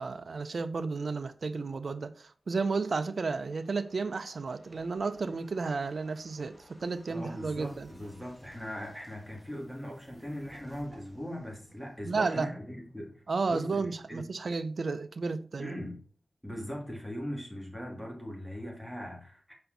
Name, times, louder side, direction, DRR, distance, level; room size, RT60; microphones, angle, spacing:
voice 1, 0.0-7.9 12.0-12.5 13.3-15.7, right 4 dB, 70° right, 0.5 m, -32 dB
sound 1, 2.6-16.0 16.3-16.4, left 1 dB, 30° left, 1.5 m, -60 dB
sound 2, 4.7-11.2, right 2 dB, 55° right, 2.2 m, -61 dB
voice 2, 7.1-13.2 13.5-14.3 15.6-16.0 16.4-19.5, equal, ahead, 2.3 m, -40 dB
5.6 x 4.4 x 3.9 m
wide cardioid pair, 75°, 0 cm